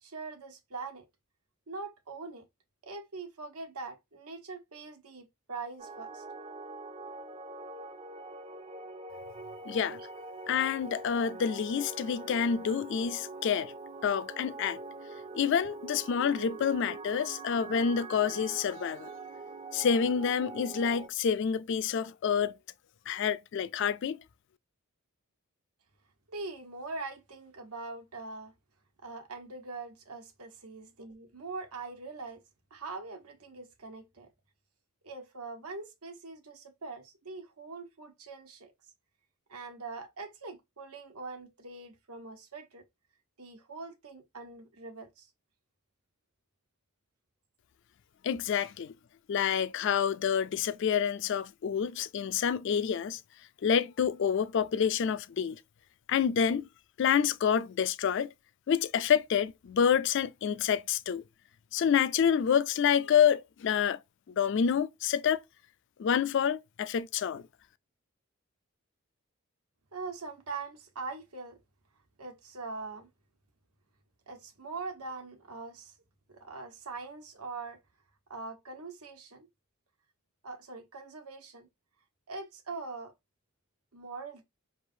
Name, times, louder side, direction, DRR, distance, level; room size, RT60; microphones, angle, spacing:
voice 1, 0.0-1.1 1.7-2.5 2.8-6.2 26.3-28.5 29.0-32.4 32.7-34.3 35.0-38.7 39.5-42.8 43.4-45.3 48.5-48.6 69.9-71.6 72.2-73.1 74.3-75.9 76.3-77.8 78.3-79.5 80.4-81.7 82.3-83.1 83.9-84.4, right 3 dB, 90° right, 1.2 m, -42 dB
sound 1, 5.8-21.1, right 3 dB, 25° right, 0.4 m, -44 dB
voice 2, 9.7-10.0 10.5-13.7 14.0-14.8 15.3-19.1 19.7-22.6 23.1-24.2 48.2-48.9 49.3-53.2 53.6-55.6 56.1-56.7 57.0-58.3 58.7-61.2 61.7-64.0 64.4-65.4 66.0-67.4, left 7 dB, 55° left, 0.3 m, -28 dB
5.1 x 3.3 x 2.6 m
head